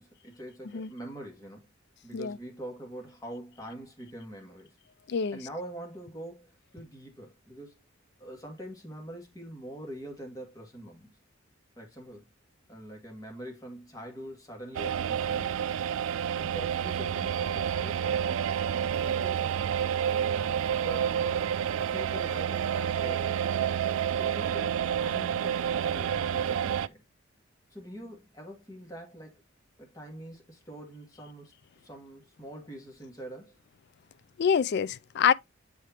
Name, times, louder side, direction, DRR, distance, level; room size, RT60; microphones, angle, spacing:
voice 1, 0.0-1.7 2.0-4.7 5.3-7.8 8.2-11.1 11.8-12.3 12.7-15.7 16.4-18.4 18.9-19.8 20.3-21.6 21.9-23.4 24.1-27.0 27.7-29.4 29.8-31.5 31.8-33.6, right 1 dB, 15° left, 2.2 m, -44 dB
voice 2, 5.1-5.4 34.4-35.3, left 7 dB, 55° left, 0.4 m, -26 dB
sound 1, 14.7-26.9, right 8 dB, 75° right, 0.4 m, -29 dB
7.8 x 4.9 x 2.8 m
head